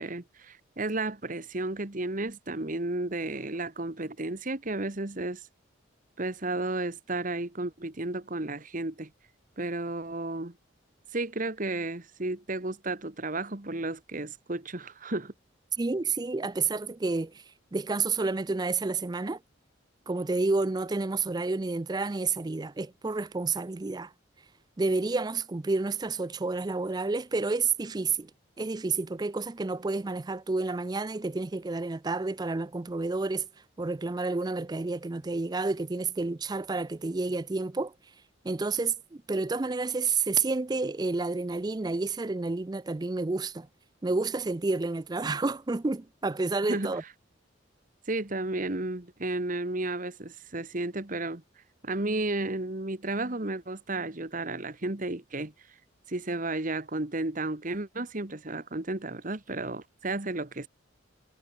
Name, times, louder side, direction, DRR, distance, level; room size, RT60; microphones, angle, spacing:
voice 1, 0.0-5.5 6.2-9.1 9.6-10.5 11.1-15.3 46.7-46.9 48.1-51.4 51.8-55.5 56.1-60.7, right 2 dB, 40° right, 1.4 m, -33 dB
voice 2, 15.8-17.4 17.7-19.4 20.1-24.1 24.8-28.3 28.6-33.5 33.8-37.9 38.4-43.7 44.0-47.0, right 3 dB, 20° right, 0.4 m, -30 dB
head